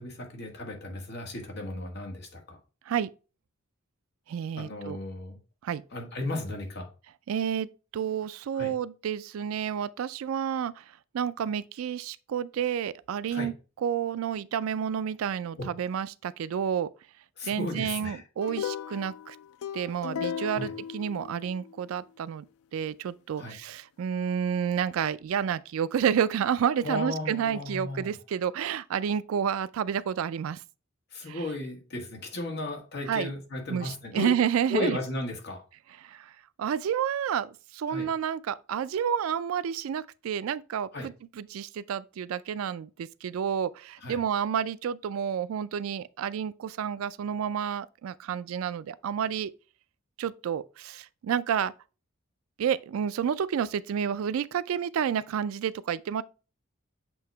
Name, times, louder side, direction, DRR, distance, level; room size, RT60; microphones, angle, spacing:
voice 1, 0.0-2.6 4.6-5.4 5.9-6.9 8.5-8.7 13.3-13.5 15.6-15.7 17.4-18.2 20.5-20.7 23.3-23.6 26.8-28.1 31.1-34.3 34.7-35.6 37.9-38.1 40.9-41.1 44.0-44.2, left 2 dB, 55° left, 1.7 m, -35 dB
voice 2, 4.3-5.0 5.6-5.8 7.3-10.8 11.1-13.5 13.8-16.9 17.4-19.4 19.7-22.5 22.7-30.6 31.3-31.4 33.1-33.3 33.7-35.0 36.0-36.3 36.6-49.5 50.2-51.7 52.6-56.2, right 8 dB, 80° right, 0.3 m, -30 dB
sound 1, 18.4-21.8, left 8 dB, 90° left, 0.3 m, -36 dB
7.8 x 2.8 x 4.4 m
head